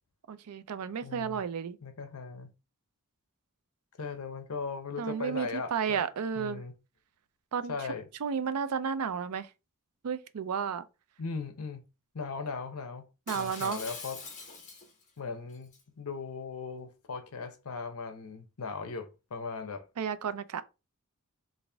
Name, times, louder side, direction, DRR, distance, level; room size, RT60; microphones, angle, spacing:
voice 1, 0.3-1.8 5.0-6.6 7.5-7.7 8.2-9.5 10.0-10.8 13.3-13.8 20.0-20.6, right 6 dB, 85° right, 0.4 m, -32 dB
voice 2, 1.0-1.4 1.8-2.5 4.0-6.0 6.4-6.7 7.7-8.1 11.2-11.8 12.1-13.1 13.3-14.2 15.2-19.9, left 4 dB, 70° left, 0.7 m, -38 dB
Shatter, 13.3-15.1 15.5-15.8, left 4 dB, 35° left, 1.4 m, -43 dB
4.0 x 2.5 x 3.3 m
head